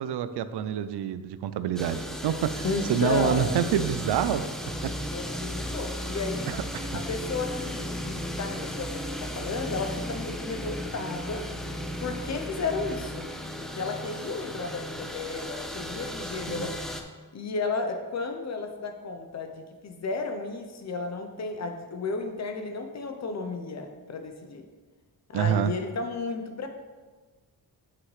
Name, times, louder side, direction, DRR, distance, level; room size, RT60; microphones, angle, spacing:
voice 1, 0.0-4.5 4.8-4.9 6.5-6.9 16.5-16.7 25.3-25.7, right 9 dB, 80° right, 12 dB, 0.5 m, -27 dB
sound 1, 1.8-17.0, equal, ahead, 0.3 m, -35 dB
voice 2, 2.6-3.5 5.1-6.5 6.9-11.5 12.0-13.3 13.6-16.8 17.3-24.7 25.3-26.7, left 4 dB, 45° left, 6 dB, 0.7 m, -33 dB
7.7 x 5.9 x 3.2 m, 1.4 s
wide cardioid pair, 150°, 39 cm